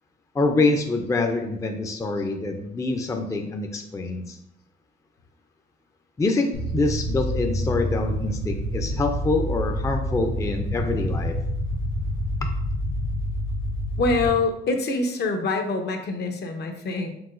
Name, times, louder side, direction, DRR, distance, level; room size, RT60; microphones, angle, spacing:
voice 1, 0.3-4.4 6.2-11.4 12.4-12.5, left 3 dB, 15° left, 4 dB, 0.4 m, -25 dB
sound 1, 6.5-14.3, equal, 75° left, 1.0 m, -27 dB
voice 2, 14.0-17.1, left 3 dB, 55° left, 5 dB, 0.7 m, -25 dB
4.7 x 3.6 x 2.5 m, 0.77 s
cardioid pair, 90°, 20 cm